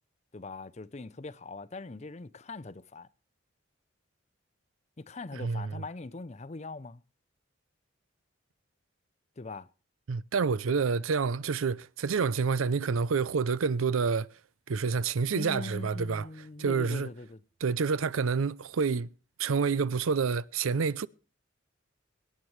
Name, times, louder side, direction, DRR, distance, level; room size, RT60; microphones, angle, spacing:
voice 1, 0.3-3.1 5.0-7.0 9.4-9.7 15.3-17.4, left 3 dB, 35° left, 0.5 m, -41 dB
voice 2, 5.3-5.7 10.1-14.3 14.7-16.3 16.6-17.1 17.6-19.1 19.4-21.1, right 5 dB, 85° right, 0.5 m, -28 dB
24.5 x 9.4 x 3.2 m
head